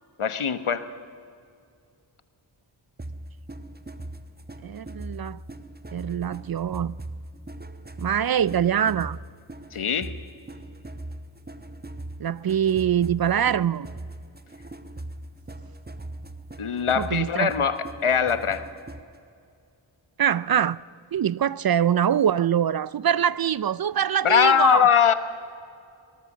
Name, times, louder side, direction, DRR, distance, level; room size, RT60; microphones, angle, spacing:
voice 1, 0.2-0.9 9.7-10.1 16.6-18.7 24.2-25.1, left 7 dB, 80° left, 1.2 m, -21 dB
sound 1, 3.0-19.2, right 1 dB, 20° right, 1.1 m, -40 dB
voice 2, 4.6-5.4 5.9-7.0 8.0-9.2 12.2-13.9 17.0-17.5 20.2-20.8 21.1-24.9, right 9 dB, 50° right, 0.5 m, -24 dB
24.5 x 19.5 x 7.3 m
wide cardioid pair, 70°, 49 cm